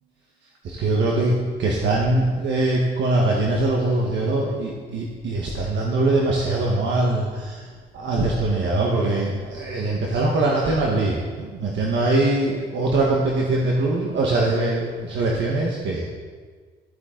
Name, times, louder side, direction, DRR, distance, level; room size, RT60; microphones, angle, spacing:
voice 1, 0.6-7.6 7.9-16.1, right 2 dB, 65° right, -2 dB, 1.4 m, -22 dB
12.5 x 8.3 x 3.9 m, 1.5 s
cardioid pair, 90°, 20 cm